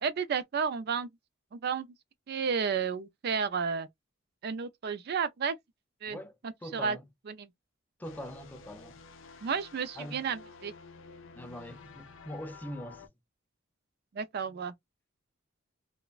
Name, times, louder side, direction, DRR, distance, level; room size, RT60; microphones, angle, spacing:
voice 1, 0.0-1.1 1.5-1.9 2.3-3.9 4.4-5.6 6.0-6.2 6.7-7.0 7.3-7.5 9.4-10.7 14.1-14.7, right 6 dB, 55° right, 0.4 m, -32 dB
voice 2, 6.6-7.0 8.0-9.0 10.0-10.2 11.4-13.1, equal, 10° left, 0.4 m, -42 dB
sound 1, 8.0-13.1, left 4 dB, 85° left, 0.5 m, -51 dB
3.1 x 2.1 x 2.3 m
head